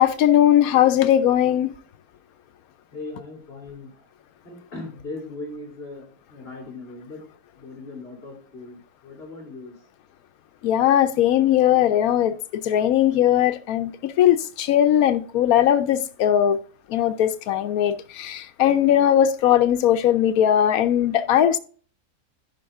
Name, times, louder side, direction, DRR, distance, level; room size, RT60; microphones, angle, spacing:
voice 1, 0.0-1.7 10.6-12.3 12.6-16.6 16.9-21.6, left 11 dB, 80° left, 1.1 m, -19 dB
voice 2, 2.9-4.1 4.4-7.3 7.5-9.7, left 2 dB, 40° left, 3.2 m, -39 dB
10.5 x 5.3 x 3.5 m
omnidirectional pair, 1.6 m